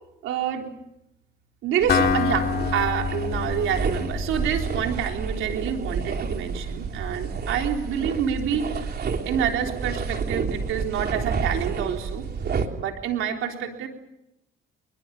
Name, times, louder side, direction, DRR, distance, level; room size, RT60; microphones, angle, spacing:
voice 1, 0.2-0.7 1.6-8.9 9.3-12.2 12.8-13.9, right 8 dB, 90° right, 3 dB, 3.8 m, -27 dB
sound 1, 1.8-12.7, right 5 dB, 55° right, 3.5 m, -30 dB
Acoustic guitar, 1.9-5.7, left 7 dB, 55° left, 2.3 m, -27 dB
28.0 x 22.5 x 7.2 m, 0.84 s
cardioid pair, 90°, 20 cm